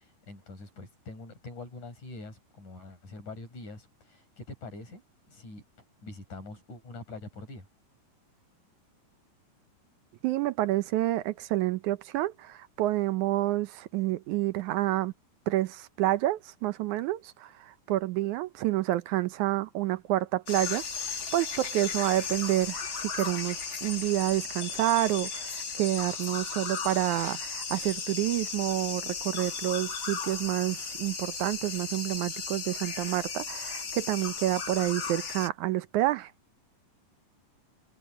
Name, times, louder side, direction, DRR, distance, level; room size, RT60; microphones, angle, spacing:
voice 1, 0.0-5.0 5.3-5.6 6.0-7.7, left 2 dB, 65° left, 8.8 m, -44 dB
voice 2, 10.2-15.1 15.5-36.3, right 15 dB, 75° right, 2.1 m, -29 dB
sound 1, 20.5-35.5, left 5 dB, 45° left, 2.2 m, -36 dB
omnidirectional pair, 3.8 m